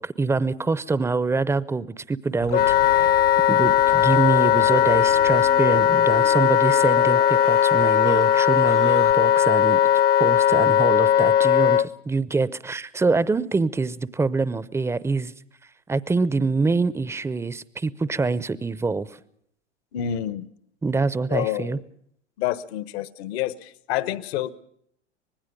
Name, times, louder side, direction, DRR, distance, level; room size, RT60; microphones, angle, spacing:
voice 1, 0.0-9.8 10.2-15.3 15.9-19.1 20.8-21.8, right 3 dB, 10° right, 18 dB, 0.7 m, -25 dB
sound 1, 2.4-9.1, left 7 dB, 90° left, 3.2 m, -36 dB
Wind instrument woodwind instrument, 2.5-11.9, left 10 dB, 25° left, 0.8 m, -18 dB
voice 2, 19.9-20.5 21.3-21.8 22.4-24.5, left 12 dB, 60° left, 16 dB, 1.3 m, -28 dB
25.0 x 20.0 x 5.3 m, 0.71 s
hypercardioid pair, 95°, 35 cm